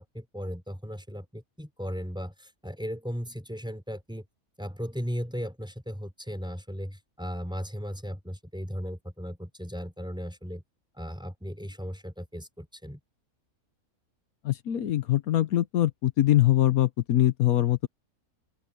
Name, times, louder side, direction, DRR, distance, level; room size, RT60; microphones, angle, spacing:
voice 1, 0.0-4.2 4.6-10.6 11.0-13.0, equal, 5° right, 5.0 m, -36 dB
voice 2, 14.4-17.9, left 13 dB, 80° left, 1.3 m, -23 dB
open air
omnidirectional pair, 1.5 m